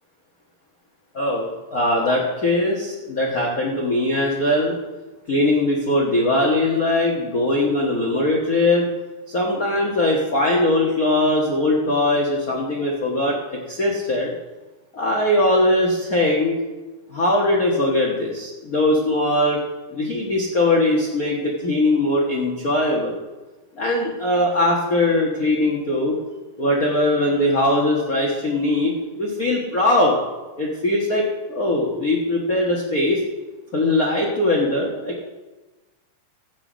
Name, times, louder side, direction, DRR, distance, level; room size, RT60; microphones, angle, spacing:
voice 1, 1.1-4.8 5.3-8.9 9.3-14.3 14.9-16.6 17.1-19.6 19.9-23.2 23.7-26.2 26.6-30.2 30.6-33.2 33.7-35.2, left 1 dB, 65° left, -2 dB, 0.8 m, -20 dB
14.0 x 8.1 x 5.1 m, 1.2 s
omnidirectional pair, 3.9 m